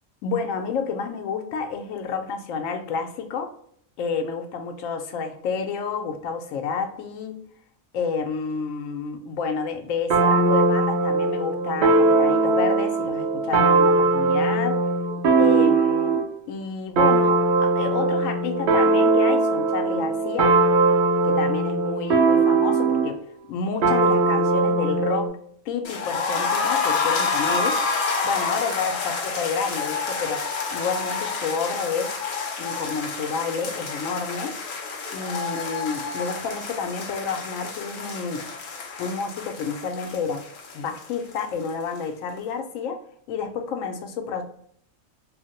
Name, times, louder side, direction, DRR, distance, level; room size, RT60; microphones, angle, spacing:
voice 1, 0.2-3.5 4.0-7.3 7.9-14.8 15.4-16.2 16.5-20.5 21.2-23.2 23.5-25.3 25.7-27.8 28.2-30.5 30.7-32.1 32.6-34.6 35.1-38.4 39.0-40.4 40.7-43.0 43.3-44.4, left 5 dB, 85° left, 6 dB, 1.0 m, -29 dB
sound 1, 10.1-16.3 17.0-23.2 23.8-25.3, right 3 dB, 65° right, 0.8 m, -20 dB
sound 2, 25.8-41.7 42.0-42.1 42.4-42.5, left 4 dB, 55° left, 0.6 m, -29 dB
3.2 x 2.0 x 2.8 m, 0.66 s
omnidirectional pair, 1.3 m